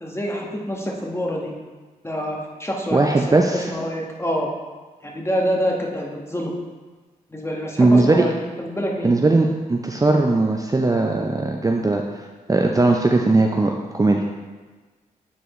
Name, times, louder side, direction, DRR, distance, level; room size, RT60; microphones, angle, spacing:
voice 1, 0.0-1.5 2.0-4.5 5.0-6.5 7.3-8.3 8.6-9.1, equal, 15° left, -1 dB, 1.5 m, -26 dB
voice 2, 2.9-3.6 7.8-8.2 9.0-12.0 12.5-14.2, right 2 dB, 20° right, 2 dB, 0.6 m, -18 dB
8.6 x 4.5 x 3.1 m, 1.3 s
supercardioid pair, 45°, 17 cm